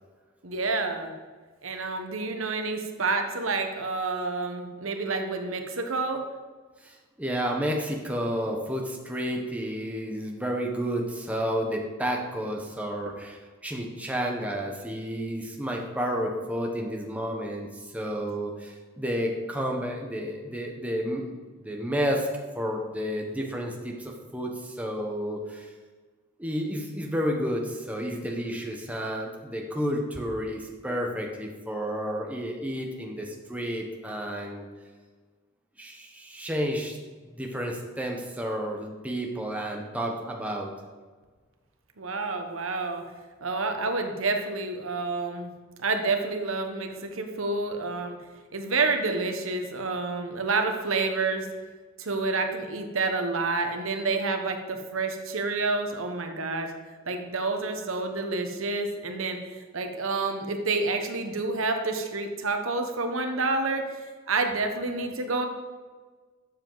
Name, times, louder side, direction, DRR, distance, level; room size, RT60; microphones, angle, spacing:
voice 1, 0.4-1.1 1.6-6.2 42.0-43.0 43.4-45.5 45.8-48.2 48.5-51.5 52.0-56.7 57.1-63.8 64.3-65.5, right 3 dB, 75° right, 5 dB, 1.1 m, -29 dB
voice 2, 6.8-22.3 22.5-25.7 26.4-34.7 35.8-37.0 37.3-40.7, equal, 5° right, 0 dB, 1.0 m, -31 dB
12.5 x 7.4 x 4.0 m, 1.4 s
head